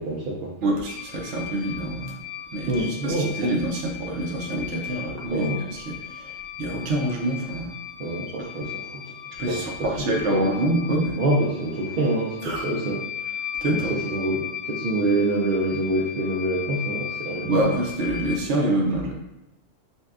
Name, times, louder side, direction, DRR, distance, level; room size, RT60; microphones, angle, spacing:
voice 1, 0.0-0.5 2.7-3.5 5.1-5.6 8.0-10.4 11.2-13.0 13.7-17.6, right 1 dB, 60° right, -4 dB, 0.6 m, -26 dB
voice 2, 0.6-2.2 2.5-7.7 8.6-8.7 9.4-11.2 12.4-12.6 13.6-14.0 17.5-19.1, right 1 dB, 75° right, 0 dB, 1.0 m, -26 dB
sound 1, 0.9-18.4, left 9 dB, 65° left, 0.8 m, -37 dB
5.3 x 2.2 x 2.4 m, 0.92 s
omnidirectional pair, 1.2 m